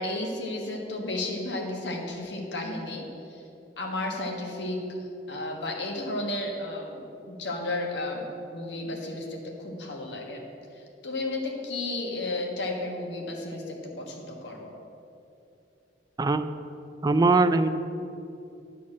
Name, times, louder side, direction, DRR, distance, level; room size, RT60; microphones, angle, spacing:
voice 1, 0.0-3.4 3.8-4.9 5.3-10.4 10.7-14.7, left 2 dB, 85° left, 0 dB, 1.5 m, -33 dB
voice 2, 17.0-17.7, right 3 dB, 20° right, 11 dB, 0.3 m, -21 dB
11.0 x 4.2 x 7.4 m, 2.7 s
head